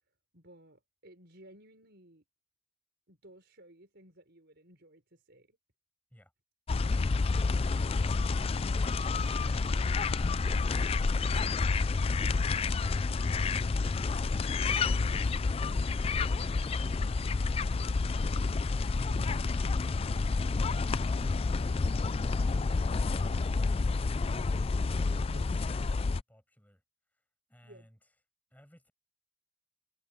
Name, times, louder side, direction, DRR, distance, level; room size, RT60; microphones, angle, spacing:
voice 1, 0.3-2.2 3.1-5.6 16.8-17.2 25.3-25.5 27.6-27.9, right 1 dB, 50° right, 5.3 m, -57 dB
sound 1, 6.7-26.2, left 4 dB, 25° left, 0.3 m, -29 dB
voice 2, 24.9-26.8 27.1-28.1 28.5-28.9, equal, 10° left, 6.4 m, -60 dB
head